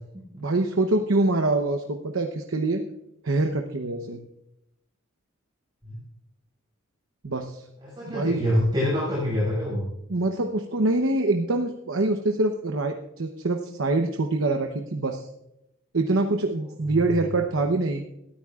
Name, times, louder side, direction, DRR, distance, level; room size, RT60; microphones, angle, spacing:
voice 1, 0.4-2.8 3.2-4.2 7.2-7.6 8.1-8.4 10.1-15.3 15.9-18.0, right 2 dB, 75° right, 4 dB, 0.9 m, -25 dB
voice 2, 7.8-9.9 16.8-17.2, equal, 20° right, -7 dB, 6.2 m, -26 dB
21.0 x 14.0 x 2.5 m, 0.84 s
head